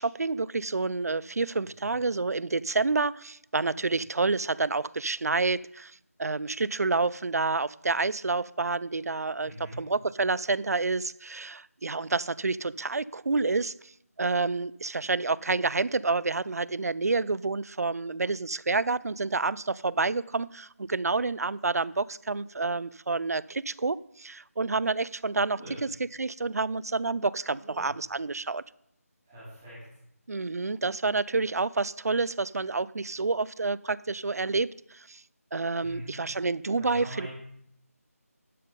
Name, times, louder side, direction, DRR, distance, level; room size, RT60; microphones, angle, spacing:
voice 1, 0.0-13.9 14.2-25.9 26.2-28.6 30.3-35.2 35.5-37.3, right 3 dB, 75° right, 20 dB, 0.4 m, -29 dB
voice 2, 9.4-9.8 25.6-25.8 27.6-27.9 29.2-29.8 35.8-36.1 36.8-37.3, equal, 10° right, -10 dB, 2.7 m, -43 dB
12.0 x 5.6 x 5.2 m, 0.74 s
figure-of-eight pair, 180°, 8 cm